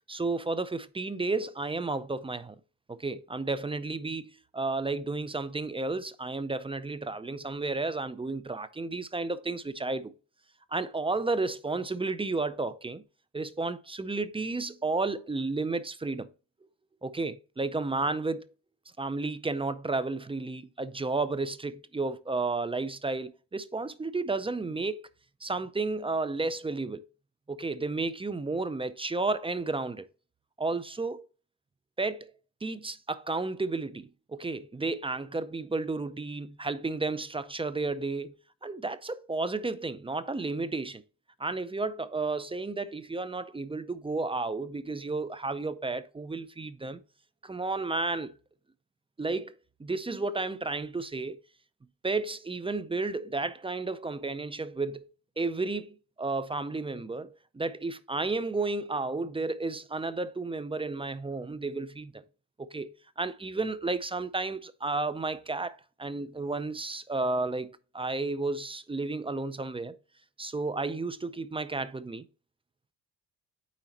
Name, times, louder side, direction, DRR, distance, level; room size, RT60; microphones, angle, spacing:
voice 1, 0.1-2.6 2.9-10.1 10.7-13.0 13.3-16.3 17.0-18.5 19.0-25.0 25.4-27.0 27.5-30.1 30.6-31.3 32.0-32.3 32.6-38.4 38.6-41.0 41.4-47.0 47.4-48.3 49.2-49.5 49.8-51.4 52.0-55.1 55.4-62.2 62.6-62.9 63.2-70.0 70.4-72.3, right 3 dB, 15° right, 0.4 m, -32 dB
8.9 x 4.2 x 2.9 m
cardioid pair, 80°, 42 cm